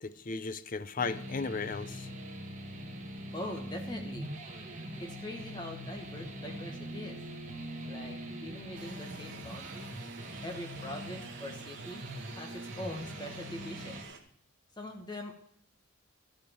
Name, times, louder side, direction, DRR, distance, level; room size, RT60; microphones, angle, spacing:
voice 1, 0.0-2.1, left 4 dB, 40° left, 14 dB, 0.6 m, -35 dB
sound 1, 1.0-14.0, equal, 35° right, 1.5 m, -43 dB
voice 2, 3.3-4.3 5.0-7.2 7.9-9.9 10.4-12.0 12.4-14.0 14.8-15.3, left 1 dB, 20° left, 3 dB, 1.1 m, -42 dB
sound 2, 8.7-14.2, right 5 dB, 55° right, 1.4 m, -49 dB
14.0 x 5.1 x 7.1 m, 0.68 s
head